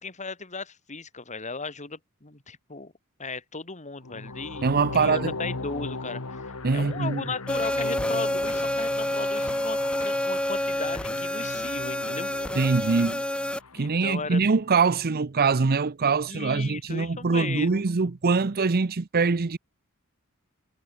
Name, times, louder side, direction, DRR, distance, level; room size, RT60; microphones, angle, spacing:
voice 1, 0.0-2.9 3.2-4.7 4.9-12.6 13.7-14.4 16.3-17.8, left 4 dB, 35° left, 2.9 m, -36 dB
sound 1, 4.0-14.1, left 3 dB, 70° left, 1.6 m, -38 dB
voice 2, 4.6-5.3 6.6-7.2 12.6-13.2 13.7-19.6, right 4 dB, 45° right, 0.6 m, -23 dB
sound 2, 7.5-13.6, left 1 dB, 5° left, 1.7 m, -28 dB
head